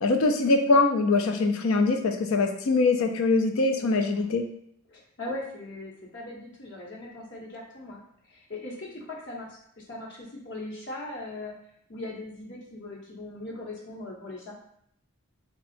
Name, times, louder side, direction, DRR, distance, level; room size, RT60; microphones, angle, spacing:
voice 1, 0.0-4.4, left 3 dB, 80° left, 6 dB, 0.5 m, -23 dB
voice 2, 3.7-4.3 4.9-8.0 8.3-9.5 9.8-11.5 11.9-14.5, left 2 dB, 60° left, -3 dB, 1.1 m, -39 dB
3.7 x 2.3 x 4.2 m, 0.69 s
head